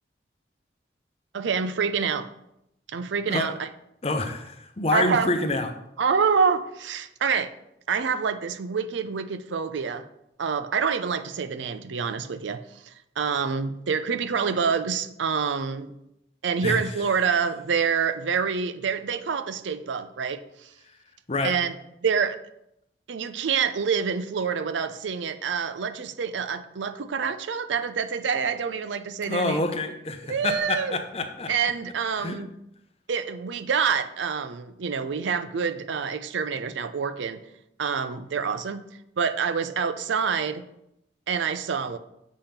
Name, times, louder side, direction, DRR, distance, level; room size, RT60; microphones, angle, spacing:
voice 1, 1.3-2.3 2.9-3.7 4.9-5.3 6.0-7.5 7.9-10.1 10.4-15.9 16.4-20.7 21.4-21.7 22.0-22.4 23.1-29.6 30.3-31.0 31.5-32.5 33.1-37.4 37.8-38.8 39.2-40.6 41.3-42.0, right 6 dB, 80° right, 12 dB, 0.5 m, -27 dB
voice 2, 4.0-5.7 16.6-16.9 21.3-21.5 29.2-31.5 32.1-32.4, left 2 dB, 35° left, 6 dB, 0.7 m, -27 dB
7.3 x 3.5 x 5.7 m, 0.81 s
head